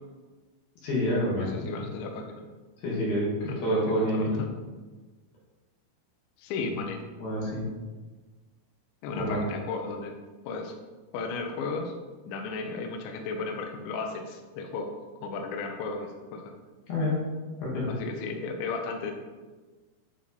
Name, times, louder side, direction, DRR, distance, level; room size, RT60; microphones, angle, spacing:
voice 1, 0.8-1.7 2.8-4.4 7.2-7.6 9.1-9.4 16.9-17.2 17.6-17.9, equal, 60° left, -6 dB, 2.9 m, -28 dB
voice 2, 1.4-2.5 3.5-4.5 6.4-7.0 9.0-10.1 10.5-10.8 11.1-11.9 12.3-14.9 15.2-16.5 17.9-19.1, left 4 dB, 80° left, 3 dB, 2.9 m, -35 dB
9.7 x 3.4 x 4.1 m, 1.3 s
omnidirectional pair, 5.5 m